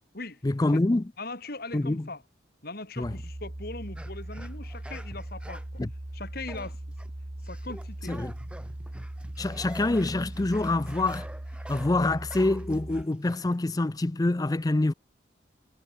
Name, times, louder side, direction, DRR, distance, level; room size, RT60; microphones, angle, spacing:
voice 1, 0.4-1.0 1.7-2.1 3.0-3.1 5.8-5.9 8.1-8.3 9.4-11.3 11.7-14.9, left 2 dB, 20° left, 0.4 m, -26 dB
voice 2, 1.2-2.2 2.6-5.8 6.1-6.8 7.4-8.2, left 2 dB, 55° left, 4.3 m, -40 dB
sound 1, 3.0-13.0, right 1 dB, 40° right, 1.2 m, -39 dB
sound 2, 4.0-5.8 6.4-7.1 7.4-13.6, right 1 dB, 5° right, 1.5 m, -46 dB
head